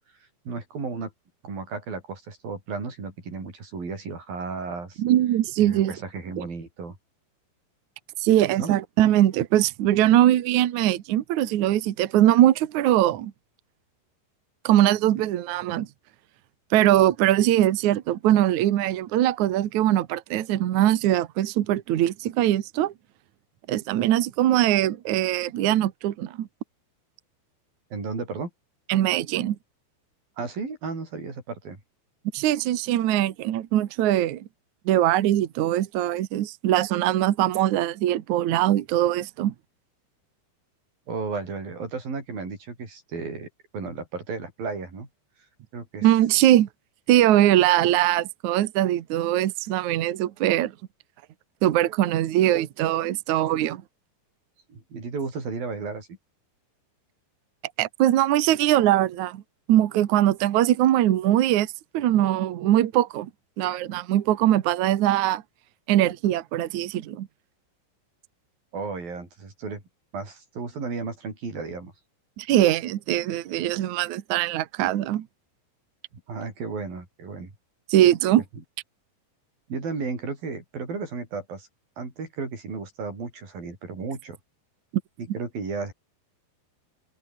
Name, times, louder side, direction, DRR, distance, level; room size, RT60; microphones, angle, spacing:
voice 1, 0.4-1.1 1.4-5.0 5.6-7.0 8.6-8.7 27.9-28.5 30.4-31.8 41.1-45.1 45.7-46.1 54.7-56.1 68.7-69.8 70.1-71.9 76.3-77.5 79.7-81.7 82.0-84.4 85.3-85.9, right 4 dB, 50° right, 8.5 m, -34 dB
voice 2, 5.0-6.0 6.4-6.5 8.2-13.3 14.6-15.9 16.7-22.9 23.7-26.5 28.9-29.6 32.3-34.5 34.8-39.5 46.0-46.7 47.1-50.7 51.6-53.8 57.8-59.4 59.7-63.3 63.6-65.4 65.9-67.3 72.4-75.3 77.9-78.4, right 13 dB, 75° right, 1.7 m, -21 dB
omnidirectional pair, 5.3 m